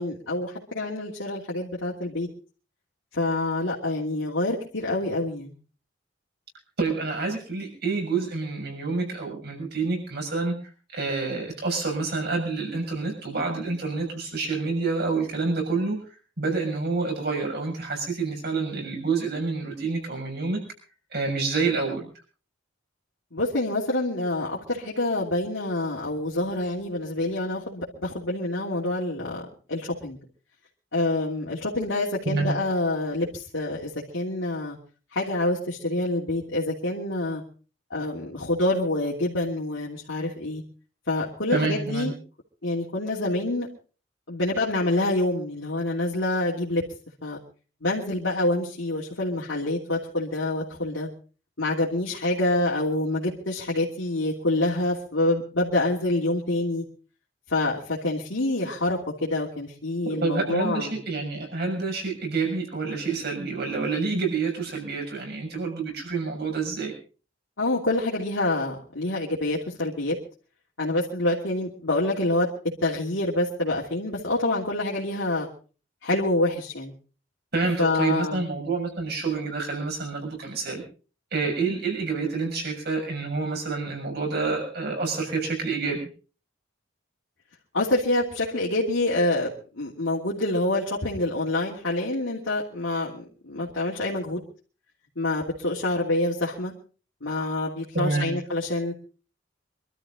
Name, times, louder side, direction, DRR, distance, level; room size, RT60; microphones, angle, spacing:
voice 1, 0.0-2.3 3.1-5.5 23.3-29.4 29.7-30.2 30.9-34.8 35.1-37.4 37.9-40.6 41.1-42.1 42.6-43.7 44.3-46.8 47.2-47.4 47.8-51.1 51.6-56.8 57.5-60.9 67.6-70.1 70.8-72.5 72.8-75.5 76.0-76.9 77.8-78.4 87.7-94.4 95.2-96.7 97.2-98.9, left 2 dB, 75° left, -5 dB, 3.0 m, -26 dB
voice 2, 6.8-10.6 10.9-16.0 16.4-20.6 21.1-22.1 32.2-32.5 41.5-42.1 60.0-66.9 77.5-80.8 81.3-86.1 97.9-98.3, right 4 dB, 55° right, 2 dB, 6.6 m, -28 dB
25.0 x 13.0 x 3.8 m, 0.38 s
head